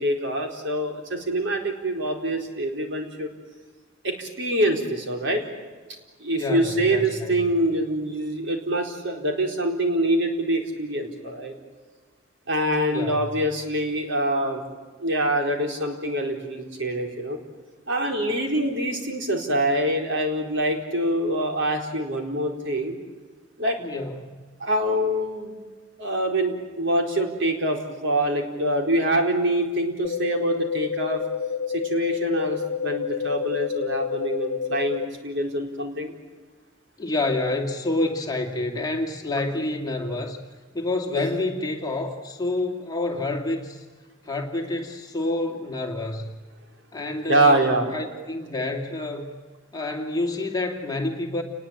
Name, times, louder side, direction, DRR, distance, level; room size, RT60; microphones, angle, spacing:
voice 1, 0.0-3.3 4.0-5.4 6.2-11.5 12.5-14.6 15.0-17.4 17.9-22.9 23.6-23.8 24.6-25.5 26.0-31.2 31.7-36.1 41.2-41.4 47.3-47.9, right 1 dB, 65° right, 2 dB, 4.4 m, -25 dB
voice 2, 6.3-7.4 12.9-13.2 23.8-24.3 37.0-40.4 40.7-43.8 44.2-46.3 46.9-49.3 49.7-51.4, left 2 dB, 20° left, 2 dB, 2.6 m, -28 dB
sound 1, 30.0-35.1, left 7 dB, 75° left, 0.8 m, -29 dB
29.5 x 20.5 x 9.0 m, 1.4 s
head